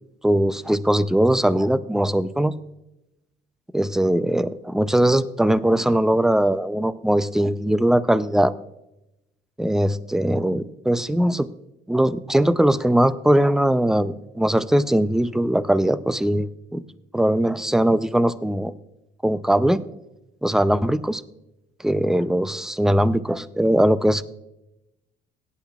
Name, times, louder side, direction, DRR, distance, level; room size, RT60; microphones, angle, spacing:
voice 1, 0.2-2.5 3.7-8.5 9.6-11.5 11.9-16.8 17.1-18.7 19.2-19.8 20.4-21.2 21.8-24.2, right 1 dB, 5° right, 14 dB, 0.5 m, -20 dB
17.5 x 10.0 x 2.4 m, 0.90 s
cardioid pair, 110°, 17 cm